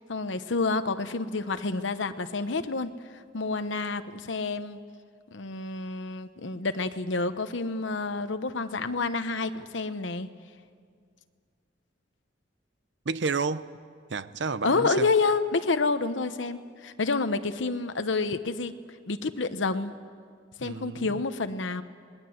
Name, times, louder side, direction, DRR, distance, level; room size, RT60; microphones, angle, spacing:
voice 1, 0.0-2.9 3.3-4.8 5.3-10.3 14.6-18.7 19.1-19.9 20.6-21.8, left 3 dB, 90° left, 10 dB, 1.0 m, -29 dB
voice 2, 13.1-13.7 14.1-15.1 20.6-21.1, right 4 dB, 70° right, 15 dB, 0.7 m, -30 dB
27.0 x 20.0 x 7.9 m, 2.1 s
head